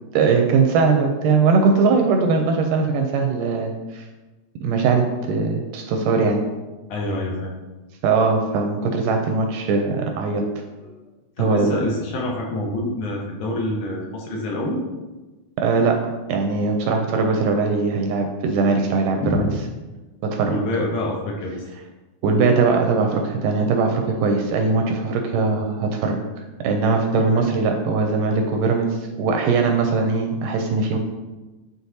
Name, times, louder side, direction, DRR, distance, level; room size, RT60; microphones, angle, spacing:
voice 1, 0.1-4.1 4.6-6.4 8.0-10.5 11.4-11.8 15.6-19.5 20.2-20.6 22.2-26.2 26.6-31.0, right 4 dB, 80° right, 3 dB, 2.0 m, -20 dB
voice 2, 6.9-7.5 10.8-11.0 11.4-14.8 19.2-19.5 20.5-21.7 25.4-25.6 27.1-27.4, left 1 dB, 70° left, -1 dB, 2.2 m, -26 dB
9.6 x 4.1 x 2.8 m, 1.2 s
omnidirectional pair, 4.0 m